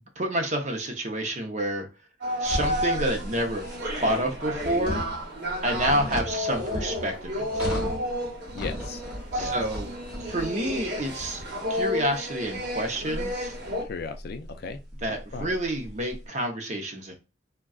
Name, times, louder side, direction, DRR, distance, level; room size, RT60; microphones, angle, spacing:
voice 1, 0.2-1.9 2.4-3.7 4.0-5.0 5.6-7.5 9.3-9.9 10.2-11.4 11.7-13.6 15.0-17.1, right 1 dB, 40° right, 0.6 m, -28 dB
sound 1, 2.2-13.8, equal, 55° right, 1.0 m, -32 dB
sound 2, 2.4-16.2, equal, 5° right, 1.4 m, -37 dB
voice 2, 8.5-9.0 9.4-9.6 13.8-14.8 15.3-15.6, left 5 dB, 55° left, 0.4 m, -36 dB
3.6 x 2.2 x 2.3 m
head